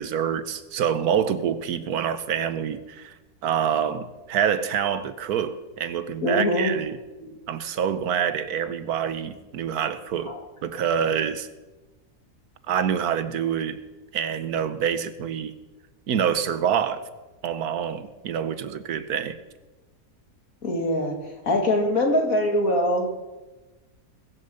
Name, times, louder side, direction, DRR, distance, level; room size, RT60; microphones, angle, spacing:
voice 1, 0.0-7.0 7.5-11.5 12.6-13.8 14.1-15.5 16.1-17.0 17.4-19.4, right 8 dB, 75° right, 12 dB, 1.4 m, -26 dB
voice 2, 6.2-6.7 7.2-7.4 10.3-10.4 20.6-21.2 21.5-23.2, left 1 dB, 60° left, 2 dB, 2.5 m, -23 dB
21.0 x 7.3 x 6.8 m, 1.2 s
omnidirectional pair, 1.7 m